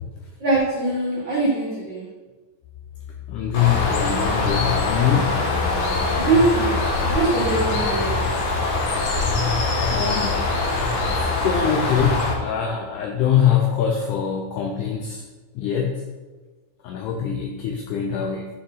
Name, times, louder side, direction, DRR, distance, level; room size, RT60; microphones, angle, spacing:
voice 1, 0.4-2.1 6.1-8.3, right 2 dB, 80° right, -6 dB, 1.0 m, -22 dB
voice 2, 3.3-5.4 9.9-10.5 11.1-15.2 15.6-16.0 16.8-18.5, left 8 dB, 85° left, 3 dB, 1.8 m, -23 dB
Bird, 3.5-12.3, left 3 dB, 65° left, 2.2 m, -23 dB
10.5 x 4.3 x 3.9 m, 1.3 s
omnidirectional pair, 4.2 m